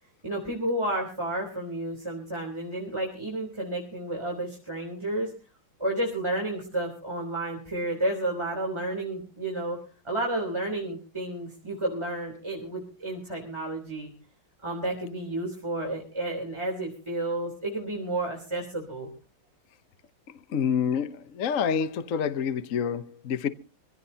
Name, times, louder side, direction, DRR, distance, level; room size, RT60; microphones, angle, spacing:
voice 1, 0.2-5.3 5.8-9.8 10.0-14.1 14.6-19.1, right 1 dB, 15° right, 3.4 m, -31 dB
voice 2, 20.5-23.5, left 7 dB, 50° left, 1.0 m, -27 dB
25.0 x 16.0 x 2.8 m
omnidirectional pair, 2.3 m